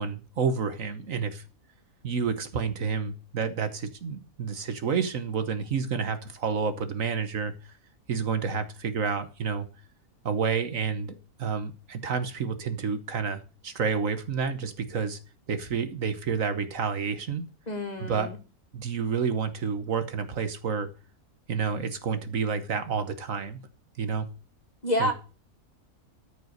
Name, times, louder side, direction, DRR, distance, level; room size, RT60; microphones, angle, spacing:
voice 1, 0.0-1.4 2.0-7.5 8.1-9.7 10.2-15.2 15.5-17.4 18.0-18.3 18.7-20.9 21.5-23.6 24.0-24.3 25.0-25.1, right 6 dB, 65° right, 1.5 m, -29 dB
voice 2, 17.7-18.4 24.8-25.1, left 1 dB, 30° left, 2.2 m, -28 dB
13.0 x 5.3 x 6.6 m
omnidirectional pair, 1.6 m